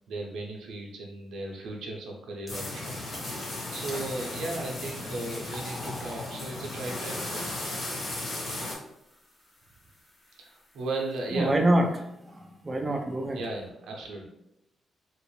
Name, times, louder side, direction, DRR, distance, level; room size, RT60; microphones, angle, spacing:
voice 1, 0.1-7.5 10.3-11.6 13.3-14.3, right 2 dB, 90° right, 0 dB, 0.7 m, -36 dB
sound 1, 2.5-8.7, left 2 dB, 80° left, 1.3 m, -36 dB
sound 2, 2.5-2.8 3.1-3.5 3.9-4.0 4.7-11.8, left 1 dB, 15° left, 0.7 m, -48 dB
voice 2, 11.3-13.4, right 1 dB, 20° right, 2 dB, 0.3 m, -26 dB
2.9 x 2.6 x 3.1 m, 0.83 s
cardioid pair, 145°, 0 cm